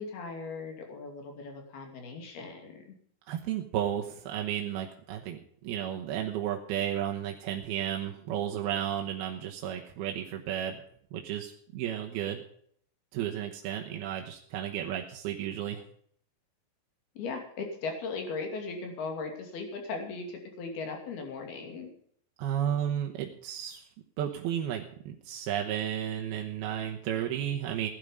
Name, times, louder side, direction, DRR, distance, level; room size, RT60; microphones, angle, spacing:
voice 1, 0.0-2.9 17.2-21.9, left 4 dB, 65° left, 3 dB, 4.4 m, -38 dB
voice 2, 3.3-10.8 11.1-12.4 13.1-15.8 22.4-23.9 24.2-27.9, right 10 dB, 70° right, 1 dB, 2.7 m, -33 dB
17.0 x 11.0 x 5.2 m, 0.64 s
omnidirectional pair, 5.0 m